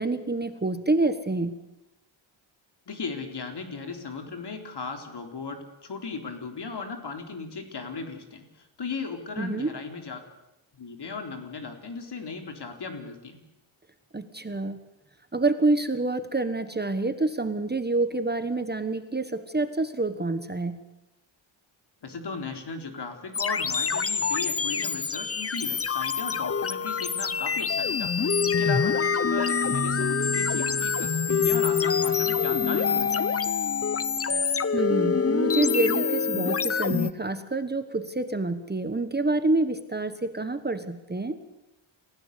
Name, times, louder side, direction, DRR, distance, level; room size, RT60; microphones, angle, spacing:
voice 1, 0.0-1.5 9.4-9.7 14.1-14.8 15.3-20.8 34.7-41.4, right 2 dB, 20° right, 10 dB, 1.3 m, -27 dB
voice 2, 2.9-10.2 10.7-13.4 22.0-33.4, left 4 dB, 55° left, 5 dB, 3.9 m, -36 dB
sound 1, 23.3-37.1, left 6 dB, 30° left, 0.8 m, -25 dB
29.0 x 16.0 x 8.4 m, 0.93 s
wide cardioid pair, 135°, 48 cm